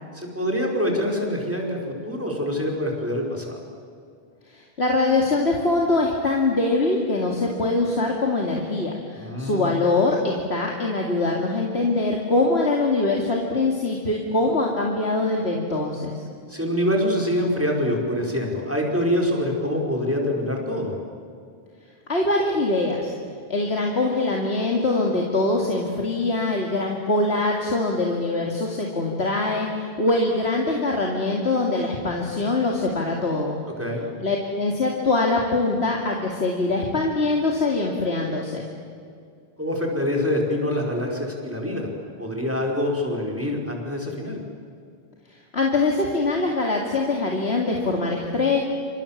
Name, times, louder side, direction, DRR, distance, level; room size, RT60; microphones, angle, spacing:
voice 1, 0.1-3.6 9.2-9.7 16.5-21.0 33.8-34.0 39.6-41.9 42.2-44.4, left 1 dB, 10° right, 0 dB, 5.0 m, -25 dB
voice 2, 4.5-16.2 22.1-23.1 23.5-33.6 34.2-38.7 45.3-48.6, left 2 dB, 80° left, 0 dB, 2.7 m, -23 dB
29.5 x 26.0 x 7.4 m, 2.3 s
omnidirectional pair, 1.1 m